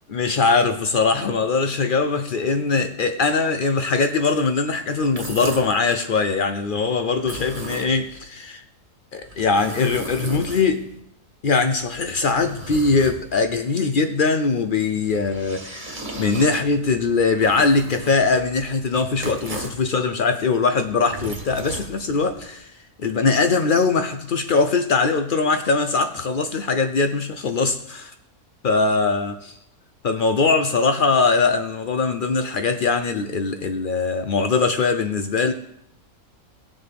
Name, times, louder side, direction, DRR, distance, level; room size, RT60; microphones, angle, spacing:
voice 1, 0.1-8.6 9.1-10.8 11.4-22.7 23.0-28.1 28.6-29.6 30.0-35.5, left 4 dB, 90° left, 8 dB, 0.4 m, -21 dB
sound 1, 5.0-5.8 7.1-8.2 9.2-11.0 11.7-13.6 15.0-19.9 20.8-22.5, right 1 dB, 30° right, 1.6 m, -36 dB
19.0 x 7.2 x 3.4 m, 0.73 s
omnidirectional pair, 1.7 m